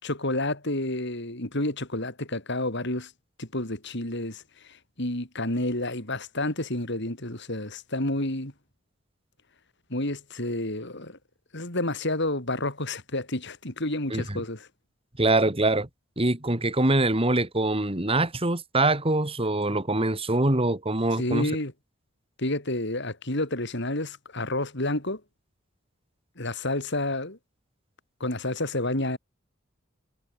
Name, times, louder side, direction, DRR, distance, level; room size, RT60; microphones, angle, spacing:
voice 1, 0.0-3.1 3.4-8.5 9.9-11.2 11.5-14.7 21.2-21.7 22.4-25.2 26.4-27.4 28.2-29.2, left 1 dB, 60° left, 6.1 m, -30 dB
voice 2, 15.2-15.9 16.2-21.5, right 2 dB, 30° right, 2.7 m, -24 dB
head